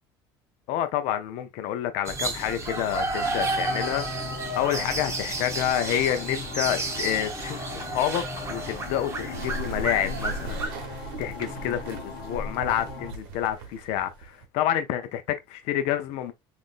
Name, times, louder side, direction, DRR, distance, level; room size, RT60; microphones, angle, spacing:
voice 1, 0.7-4.1 4.5-8.2 8.5-10.9 11.2-16.3, left 11 dB, 70° left, 0.5 m, -28 dB
sound 1, 2.1-10.7, right 2 dB, 25° right, 1.0 m, -31 dB
sound 2, 3.1-13.1, left 5 dB, 55° left, 0.9 m, -40 dB
sound 3, 9.3-14.5, right 2 dB, 85° right, 0.8 m, -37 dB
3.7 x 2.5 x 2.4 m
supercardioid pair, 85°, 11 cm